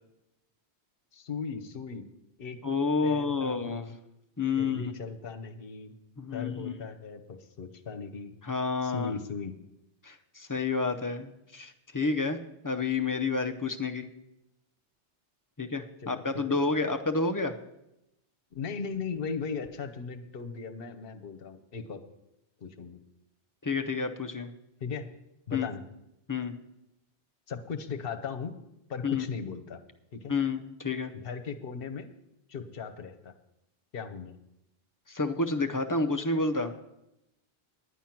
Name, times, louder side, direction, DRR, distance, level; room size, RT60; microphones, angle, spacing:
voice 1, 1.1-2.0 2.4-2.6 3.0-3.9 4.6-5.9 6.3-8.3 8.8-9.5 16.0-16.4 18.5-22.0 22.6-23.0 24.8-25.1 25.5-25.8 27.5-28.5 28.9-29.8 30.1-30.4 31.2-32.1 32.5-33.3 33.9-34.3, left 5 dB, 55° left, 7 dB, 1.1 m, -37 dB
voice 2, 2.6-3.8 4.4-4.8 6.2-6.8 8.4-9.1 10.0-12.4 12.6-14.1 15.6-17.5 23.6-24.5 25.5-25.7 26.3-26.5 29.0-29.3 30.3-31.1 35.1-36.7, left 4 dB, 25° left, 6 dB, 0.5 m, -29 dB
10.0 x 9.1 x 5.8 m, 0.87 s
omnidirectional pair, 1.2 m